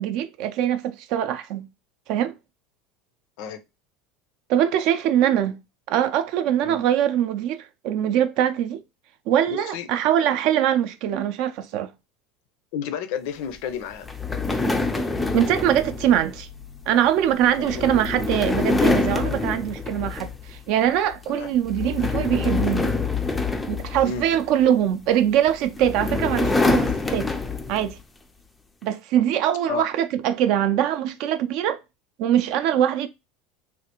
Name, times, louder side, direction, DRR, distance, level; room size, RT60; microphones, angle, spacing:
voice 1, 0.0-1.7 2.1-2.4 4.5-5.6 5.9-8.8 9.3-11.9 15.3-16.5 16.9-22.9 23.7-27.3 27.7-28.0 28.8-31.8 32.2-33.1, right 10 dB, 55° right, 0.4 m, -22 dB
voice 2, 9.5-9.9 12.7-14.1 17.4-18.1 21.3-21.5 24.0-24.3 29.7-29.9, left 8 dB, 65° left, 0.5 m, -32 dB
sound 1, 14.0-20.6 20.9-21.2 21.6-24.6 25.5-27.9, left 3 dB, 10° left, 0.4 m, -26 dB
3.3 x 2.3 x 2.9 m
supercardioid pair, 150°, 0 cm